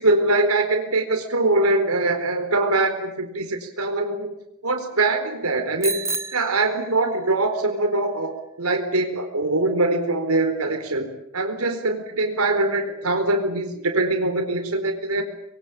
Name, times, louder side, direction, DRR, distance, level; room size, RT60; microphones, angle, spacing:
voice 1, 0.0-4.3 4.6-6.1 6.3-11.1 11.3-15.2, right 2 dB, 85° right, 5 dB, 4.3 m, -23 dB
Bicycle bell, 5.8-7.4, right 3 dB, 15° right, 1.5 m, -30 dB
25.5 x 22.5 x 8.9 m, 0.81 s
head